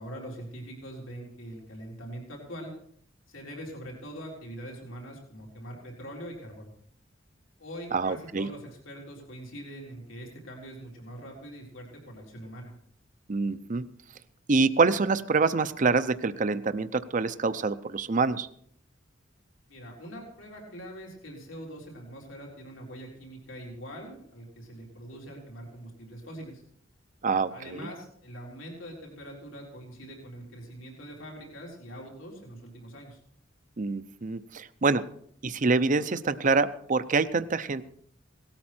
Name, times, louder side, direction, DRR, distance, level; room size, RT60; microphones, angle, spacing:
voice 1, 0.0-2.7 3.3-6.7 7.6-12.7 19.7-26.6 27.5-33.2, equal, 90° left, -2 dB, 4.1 m, -43 dB
voice 2, 7.9-8.5 13.3-13.8 14.5-18.5 27.2-27.9 33.8-35.0 35.4-37.8, right 4 dB, 40° right, 12 dB, 0.6 m, -26 dB
18.0 x 13.0 x 4.4 m, 0.64 s
head